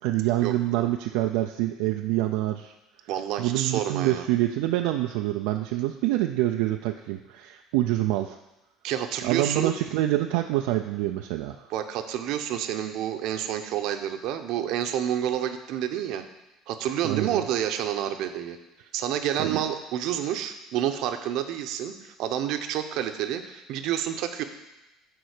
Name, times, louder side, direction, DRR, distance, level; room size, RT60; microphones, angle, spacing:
voice 1, 0.0-2.7 3.4-8.4 9.2-11.7 17.0-17.4 19.4-19.6, right 15 dB, 85° right, 5 dB, 0.4 m, -26 dB
voice 2, 3.1-4.3 8.8-9.7 11.7-16.2 16.7-18.6 18.9-24.4, right 10 dB, 65° right, 8 dB, 0.7 m, -29 dB
9.4 x 3.8 x 6.5 m, 0.99 s
cardioid pair, 125°, 0 cm